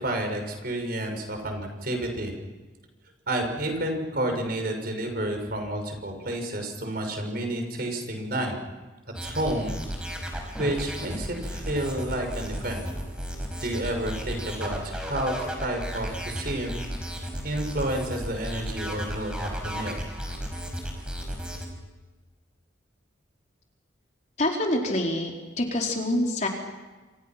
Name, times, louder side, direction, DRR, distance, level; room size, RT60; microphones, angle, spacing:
voice 1, 0.0-2.3 3.3-8.6 9.2-9.8 10.6-12.8 13.6-15.3 15.6-16.8 17.4-20.0, right 1 dB, 50° right, 4 dB, 6.2 m, -30 dB
sound 1, 9.1-21.7, equal, 5° right, 5.3 m, -34 dB
voice 2, 24.4-25.3 25.6-26.5, left 1 dB, 40° left, 0 dB, 4.5 m, -25 dB
28.5 x 28.0 x 6.0 m, 1.3 s
head